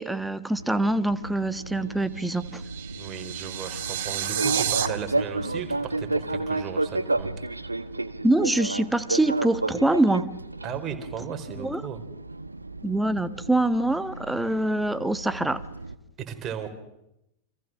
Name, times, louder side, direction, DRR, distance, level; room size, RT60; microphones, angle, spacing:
voice 1, 0.0-2.6 8.2-10.3 11.6-11.8 12.8-15.6, right 1 dB, 5° right, 1.3 m, -24 dB
Fixed-wing aircraft airplane, 0.6-15.9, right 2 dB, 80° right, 1.4 m, -32 dB
sound 1, 2.2-4.9, right 11 dB, 50° right, 2.1 m, -30 dB
voice 2, 2.9-7.3 10.6-12.0 16.3-16.7, right 7 dB, 30° right, 4.5 m, -36 dB
29.5 x 27.0 x 6.4 m
figure-of-eight pair, 90°, 0 cm